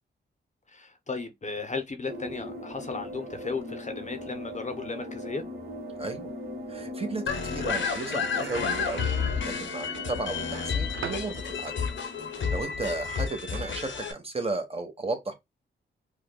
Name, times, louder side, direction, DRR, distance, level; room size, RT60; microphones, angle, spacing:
voice 1, 0.7-5.4, left 4 dB, 35° left, 0.8 m, -35 dB
sound 1, 2.1-13.2, left 1 dB, 50° right, 1.6 m, -40 dB
voice 2, 6.0-6.3 6.7-9.1 9.4-11.7 12.3-15.3, right 3 dB, 30° right, 1.1 m, -34 dB
sound 2, 7.3-14.1, left 6 dB, 70° left, 0.8 m, -31 dB
sound 3, 7.7-9.4 10.5-11.3 13.5-13.8, right 8 dB, 80° right, 0.5 m, -40 dB
4.8 x 2.3 x 2.2 m
cardioid pair, 70°, 20 cm